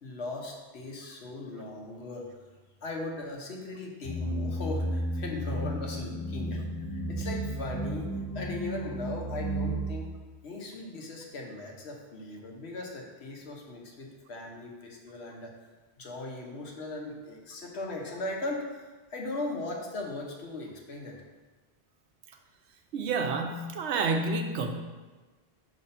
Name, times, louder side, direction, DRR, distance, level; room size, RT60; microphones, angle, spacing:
voice 1, 0.0-2.3 2.8-10.1 10.4-15.5 16.0-18.8 19.1-21.2, left 2 dB, 75° left, 0 dB, 1.2 m, -38 dB
sound 1, 4.0-9.9, right 1 dB, 20° left, 0.6 m, -33 dB
voice 2, 22.9-24.8, right 3 dB, 85° right, 4 dB, 1.0 m, -29 dB
5.6 x 3.2 x 5.3 m, 1.3 s
omnidirectional pair, 1.1 m